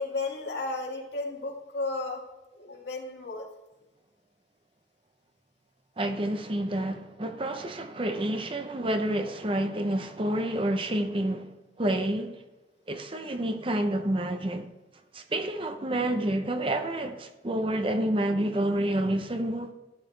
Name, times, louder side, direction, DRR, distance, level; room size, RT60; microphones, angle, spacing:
voice 1, 0.0-2.2 2.6-3.5, left 3 dB, 70° left, 2.0 m, -33 dB
voice 2, 6.0-12.4 12.9-14.7 15.1-19.7, right 1 dB, 30° right, 0.7 m, -29 dB
12.0 x 8.3 x 3.3 m
head